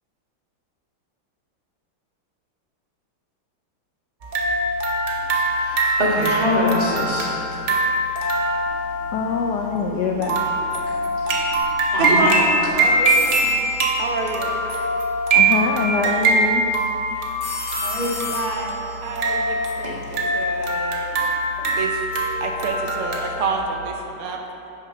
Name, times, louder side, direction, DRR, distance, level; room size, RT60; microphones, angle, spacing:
sound 1, 4.2-23.6, right 2 dB, 55° right, 0.8 m, -23 dB
voice 1, 5.3-7.6 11.2-11.3 11.9-12.4 17.8-18.3, left 1 dB, 20° right, -6 dB, 1.7 m, -24 dB
voice 2, 9.1-11.8 15.3-16.9, left 4 dB, 75° left, 2 dB, 0.9 m, -25 dB
voice 3, 12.0-13.7 13.9-14.5 17.1-17.2 18.3-21.3 21.7-22.0 22.4-24.4, right 4 dB, 85° right, 2 dB, 1.8 m, -28 dB
sound 2, 13.1-15.1 17.4-20.4, left 2 dB, 60° left, 2.2 m, -35 dB
9.3 x 6.0 x 5.4 m, 2.8 s
omnidirectional pair, 2.4 m